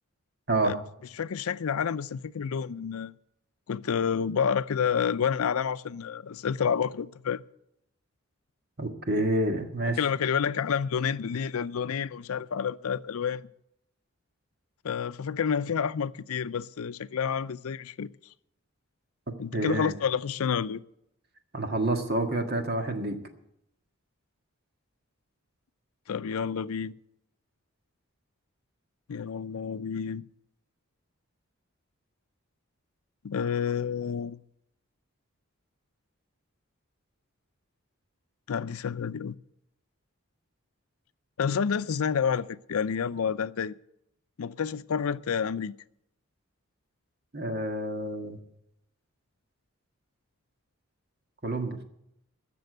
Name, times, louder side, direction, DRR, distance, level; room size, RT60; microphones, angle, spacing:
voice 1, 1.2-3.1 3.7-7.4 10.0-13.5 14.8-18.1 19.4-20.8 26.1-26.9 29.1-30.2 33.2-34.4 38.5-39.4 41.4-43.8 44.4-45.7, left 7 dB, 85° left, 0.5 m, -29 dB
voice 2, 8.8-10.0 19.5-19.9 21.5-23.2 47.3-48.4 51.4-51.8, right 2 dB, 45° right, 1.7 m, -28 dB
14.5 x 6.9 x 9.3 m
head